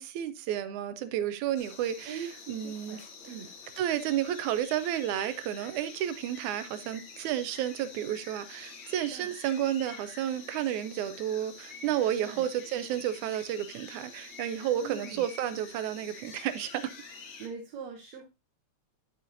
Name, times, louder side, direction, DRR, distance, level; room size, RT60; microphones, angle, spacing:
voice 1, 0.0-3.0 3.8-16.9, right 11 dB, 85° right, 2.2 m, -31 dB
sound 1, 1.6-17.5, left 5 dB, 50° left, 2.0 m, -48 dB
voice 2, 2.1-3.0 3.3-3.5 9.1-9.3 12.2-12.4 14.7-15.2 17.4-18.3, right 6 dB, 70° right, 2.3 m, -42 dB
10.5 x 6.7 x 2.7 m
omnidirectional pair, 3.3 m